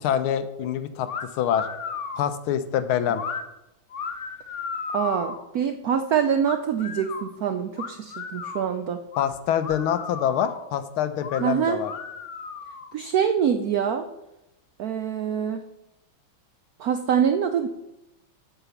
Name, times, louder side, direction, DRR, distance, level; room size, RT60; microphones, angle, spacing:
voice 1, 0.0-1.1 1.3-1.7 2.2-3.2 9.2-11.9, left 9 dB, 90° left, 11 dB, 1.6 m, -25 dB
sound 1, 1.1-1.2 1.5-2.3 3.1-3.4 3.9-5.4 6.4-7.3 7.8-8.7 9.1-9.2 9.6-10.7 11.2-11.4 11.8-12.9, left 6 dB, 60° left, 0.8 m, -34 dB
voice 2, 4.9-9.0 11.4-11.8 12.9-14.1 14.8-15.7 16.8-17.7, right 8 dB, 80° right, 8 dB, 0.8 m, -25 dB
7.7 x 5.9 x 7.0 m, 0.90 s
omnidirectional pair, 2.3 m